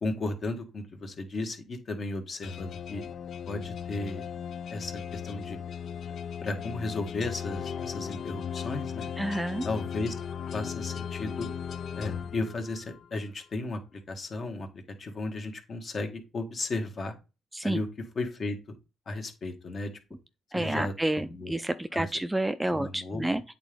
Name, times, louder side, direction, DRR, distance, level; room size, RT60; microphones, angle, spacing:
voice 1, 0.0-3.0 3.5-4.2 4.7-5.6 6.4-9.1 9.6-10.2 10.5-11.5 12.0-14.7 15.0-17.1 17.6-17.9 18.1-18.6 19.1-19.9 20.5-20.9 21.3-21.5 21.9-22.1 22.7-23.3, left 2 dB, 45° left, 1.4 m, -34 dB
sound 1, 2.4-13.1, left 7 dB, 60° left, 0.3 m, -37 dB
voice 2, 9.2-9.7 17.5-17.8 20.5-23.4, right 1 dB, 10° right, 0.4 m, -29 dB
8.4 x 3.8 x 3.5 m
cardioid pair, 90°, 0 cm